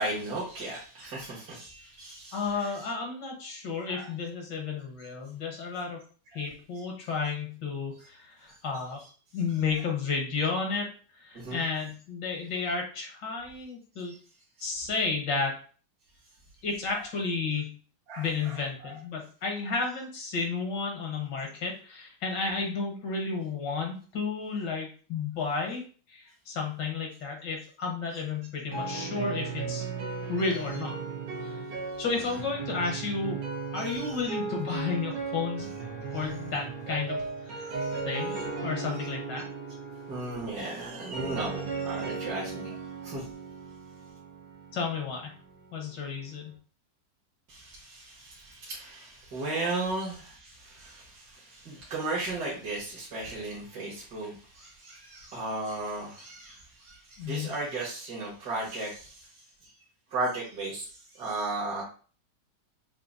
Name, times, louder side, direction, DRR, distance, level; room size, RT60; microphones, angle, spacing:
voice 1, 0.0-2.9 3.9-4.1 6.3-6.4 8.0-8.1 9.0-9.1 9.7-9.8 11.3-11.6 14.1-14.2 14.6-14.9 16.9-17.0 18.1-18.9 33.7-34.2 36.1-36.2 37.6-38.0 38.2-38.4 38.9-39.1 40.1-43.2 47.5-59.3 59.6-59.7 60.1-61.8, right 2 dB, 65° right, -6 dB, 2.0 m, -36 dB
voice 2, 2.3-6.0 6.3-9.0 9.3-10.9 11.2-14.1 14.6-15.6 16.6-17.7 18.2-25.8 26.1-29.9 30.3-31.0 32.0-33.4 33.7-35.7 36.1-37.2 37.5-37.7 38.1-39.4 44.7-45.3 45.7-46.5 57.2-57.5, left 4 dB, 80° left, 1 dB, 1.8 m, -32 dB
sound 1, 28.7-46.5, right 4 dB, 85° right, 1.9 m, -36 dB
6.6 x 2.7 x 2.6 m, 0.39 s
omnidirectional pair, 1.9 m